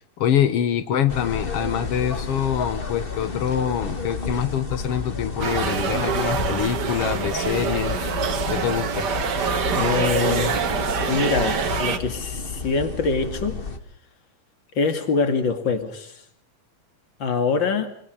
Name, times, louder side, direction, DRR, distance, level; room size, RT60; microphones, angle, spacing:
voice 1, 0.2-8.1 8.5-9.1, left 9 dB, 80° left, 11 dB, 1.3 m, -25 dB
sound 1, 1.1-13.8, left 4 dB, 60° left, 0.5 m, -31 dB
sound 2, 5.4-12.0, right 6 dB, 55° right, 1.1 m, -25 dB
voice 2, 9.7-10.6 11.1-13.6 14.7-16.2 17.2-17.9, left 5 dB, 35° left, 9 dB, 2.4 m, -24 dB
25.0 x 24.0 x 5.2 m, 0.65 s
omnidirectional pair, 4.3 m